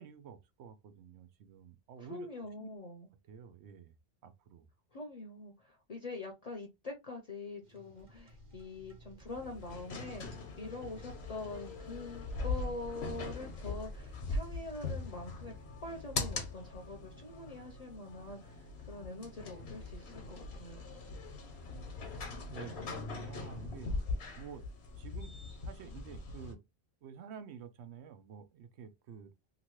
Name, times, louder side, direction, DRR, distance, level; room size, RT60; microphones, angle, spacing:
voice 1, 0.0-2.3 2.6-2.7 3.2-3.9 4.2-4.7 22.5-23.9 24.4-24.6 25.0-25.3 25.6-26.6 27.0-29.3, right 7 dB, 85° right, 0.9 m, -50 dB
voice 2, 2.0-3.1 4.9-15.5 15.8-20.8, left 2 dB, 45° left, 0.6 m, -44 dB
sound 1, 7.6-15.2, equal, 55° right, 1.1 m, -59 dB
sound 2, 9.3-26.5, left 3 dB, 80° left, 1.1 m, -41 dB
2.9 x 2.7 x 3.0 m
omnidirectional pair, 1.1 m